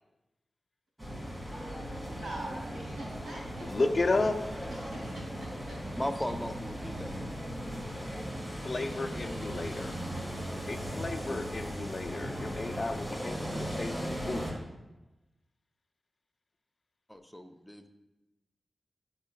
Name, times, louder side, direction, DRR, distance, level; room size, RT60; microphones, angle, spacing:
sound 1, 1.0-14.5, equal, 20° right, 1.9 m, -38 dB
voice 1, 2.1-3.7 4.7-5.8, right 2 dB, 90° right, -3 dB, 2.7 m, -43 dB
voice 2, 3.6-4.4 8.6-9.9 10.7-14.6, left 3 dB, 50° left, 7 dB, 0.6 m, -33 dB
voice 3, 6.0-7.4 7.9-8.4 17.1-17.9, equal, 10° left, 6 dB, 0.6 m, -38 dB
11.5 x 5.6 x 2.3 m, 0.98 s
cardioid pair, 55°, 0 cm